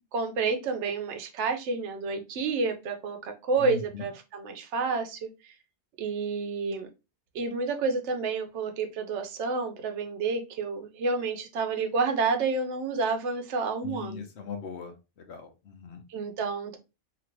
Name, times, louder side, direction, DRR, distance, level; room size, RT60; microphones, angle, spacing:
voice 1, 0.1-5.3 6.0-6.9 7.3-14.2 16.1-16.8, right 4 dB, 85° right, 5 dB, 0.9 m, -29 dB
voice 2, 3.6-4.0 13.8-14.9 15.3-16.0, left 5 dB, 75° left, 5 dB, 1.0 m, -39 dB
2.9 x 2.5 x 3.0 m, 0.27 s
omnidirectional pair, 1.1 m